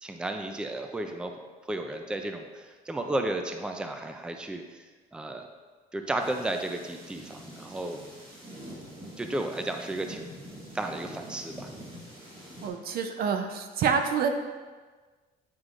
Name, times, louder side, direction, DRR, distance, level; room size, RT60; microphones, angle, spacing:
voice 1, 0.0-1.3 1.7-4.8 5.1-5.5 5.9-8.0 9.2-10.3 10.7-11.7, right 2 dB, 5° right, 5 dB, 0.4 m, -33 dB
sound 1, 6.2-12.7, equal, 30° right, 1.9 m, -45 dB
voice 2, 12.6-14.3, right 6 dB, 65° right, 6 dB, 0.6 m, -27 dB
9.3 x 4.7 x 2.5 m, 1.4 s
cardioid pair, 110°, 17 cm